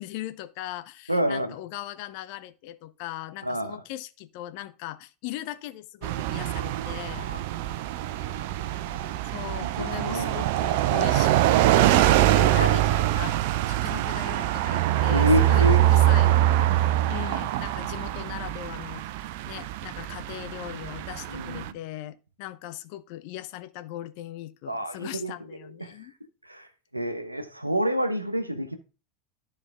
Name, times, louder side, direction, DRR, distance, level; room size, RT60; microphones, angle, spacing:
voice 1, 0.0-7.3 9.3-11.6 11.9-16.7 17.1-26.1, left 14 dB, 50° left, 0.7 m, -39 dB
voice 2, 1.1-1.5 3.4-3.8 7.3-7.4 8.3-8.5 8.9-9.1 9.6-10.4 12.5-12.7 15.1-15.8 21.3-21.8 24.7-25.3 25.6-25.9 26.4-26.7 26.9-28.8, equal, 90° right, 1.0 m, -28 dB
sound 1, 6.0-21.7, right 13 dB, 55° right, 0.5 m, -24 dB
13.0 x 4.4 x 3.5 m
figure-of-eight pair, 85°, 0 cm